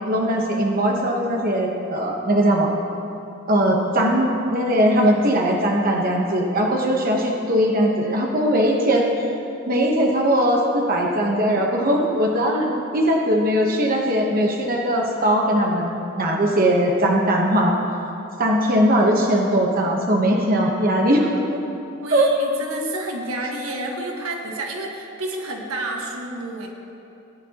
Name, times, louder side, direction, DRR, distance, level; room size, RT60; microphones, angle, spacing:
voice 1, 0.1-2.7 3.5-9.3 9.7-17.8 18.4-21.3 22.1-22.3, equal, 45° right, 0 dB, 1.0 m, -20 dB
voice 2, 12.5-12.8 22.0-26.7, right 2 dB, 90° right, 0 dB, 1.4 m, -30 dB
18.0 x 9.9 x 2.9 m, 2.8 s
head